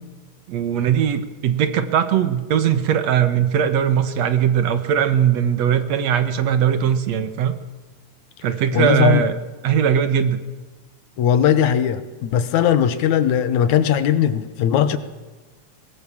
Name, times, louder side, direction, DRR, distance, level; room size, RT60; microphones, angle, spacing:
voice 1, 0.5-7.5 8.4-9.3 9.6-10.4, right 9 dB, 65° right, 10 dB, 2.4 m, -19 dB
voice 2, 8.7-9.2 11.2-15.0, left 9 dB, 75° left, 12 dB, 2.5 m, -18 dB
22.5 x 19.0 x 7.3 m, 1.3 s
omnidirectional pair, 3.3 m